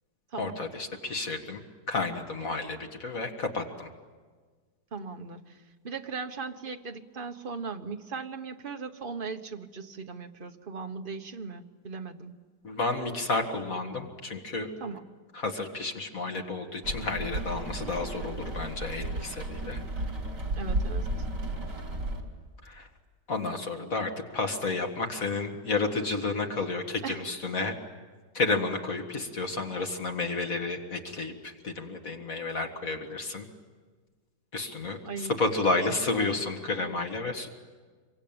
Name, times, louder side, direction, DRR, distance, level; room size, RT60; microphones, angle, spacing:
voice 1, 0.3-1.6 1.9-3.9 12.6-14.7 15.3-19.8 22.6-22.9 23.3-27.8 28.3-33.5 34.5-37.5, left 3 dB, 55° left, 4 dB, 2.2 m, -31 dB
voice 2, 4.9-5.6 5.8-12.3 14.8-15.0 20.6-21.1 27.0-27.3 35.0-35.3 35.6-35.8 36.2-36.4, right 4 dB, 35° right, 6 dB, 1.2 m, -38 dB
Rain, 16.8-22.2, right 1 dB, 80° right, 3.8 m, -33 dB
26.5 x 23.5 x 8.8 m, 1.5 s
omnidirectional pair, 1.8 m